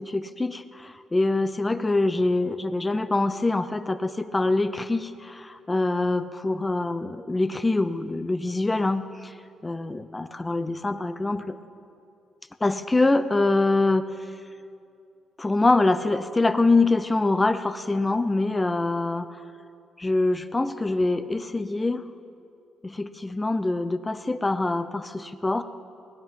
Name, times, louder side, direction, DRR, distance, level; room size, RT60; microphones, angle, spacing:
voice 1, 0.0-9.3 9.6-11.6 12.6-14.0 15.4-19.4 20.0-22.0 22.8-25.6, left 2 dB, 20° left, 11 dB, 0.6 m, -24 dB
19.0 x 9.2 x 5.4 m, 2.4 s
cardioid pair, 90°, 0 cm